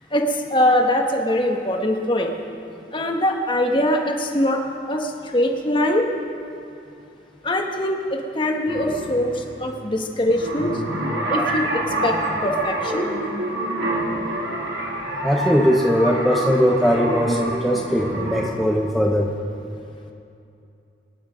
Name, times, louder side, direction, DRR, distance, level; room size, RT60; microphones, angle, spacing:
voice 1, 0.1-2.4 2.9-4.6 4.9-6.1 7.4-10.8 11.3-12.2 12.4-13.1, left 1 dB, 25° left, 2 dB, 1.3 m, -22 dB
sound 1, 8.7-18.5, right 1 dB, 65° right, 2.8 m, -27 dB
voice 2, 15.2-19.3, equal, ahead, -1 dB, 0.9 m, -20 dB
26.0 x 9.9 x 5.2 m, 2.7 s
head